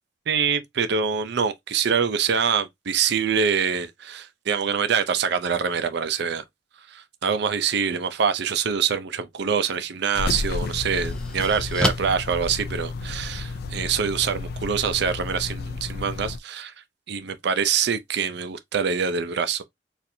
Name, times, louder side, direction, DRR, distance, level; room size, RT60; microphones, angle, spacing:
voice 1, 0.3-6.4 6.9-16.7 17.1-19.6, right 6 dB, 65° right, 0.5 m, -25 dB
sound 1, 9.6-9.7 10.3-13.3, left 1 dB, 5° left, 0.6 m, -31 dB
sound 2, 10.1-16.4, left 3 dB, 60° left, 0.4 m, -32 dB
4.2 x 2.5 x 2.6 m
head